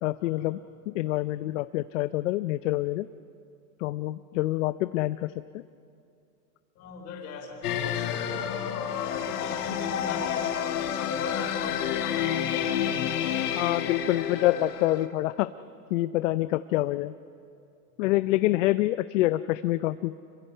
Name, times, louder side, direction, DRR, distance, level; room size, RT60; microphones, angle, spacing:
voice 1, 0.0-0.6 0.9-3.1 3.8-5.6 13.5-15.5 15.9-17.1 18.0-20.1, left 16 dB, 55° left, 13 dB, 0.6 m, -26 dB
voice 2, 6.8-13.2, left 5 dB, 35° left, 2 dB, 4.5 m, -39 dB
sound 1, 7.6-15.1, left 9 dB, 80° left, 1.9 m, -29 dB
26.5 x 23.0 x 5.6 m, 2.5 s
supercardioid pair, 150°, 45 cm